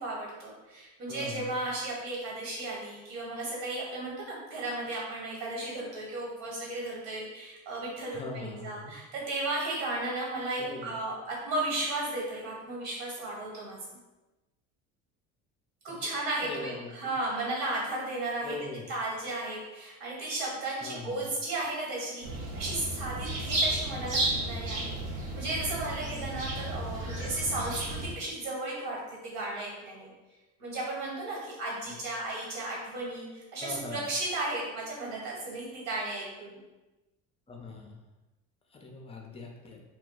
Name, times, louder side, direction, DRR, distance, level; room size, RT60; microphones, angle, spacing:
voice 1, 0.0-14.0 15.8-18.6 18.9-30.1 30.6-36.6, right 2 dB, 65° right, -3 dB, 1.4 m, -35 dB
voice 2, 1.1-1.5 8.1-9.0 10.6-11.0 15.9-16.0 16.4-16.9 18.4-18.9 20.8-21.3 33.6-34.0 37.5-38.0 38.7-39.8, left 3 dB, 15° left, 1 dB, 0.5 m, -41 dB
sound 1, 22.2-28.1, right 1 dB, 80° right, 1.0 m, -33 dB
2.2 x 2.2 x 3.9 m, 1.1 s
supercardioid pair, 85°, 39 cm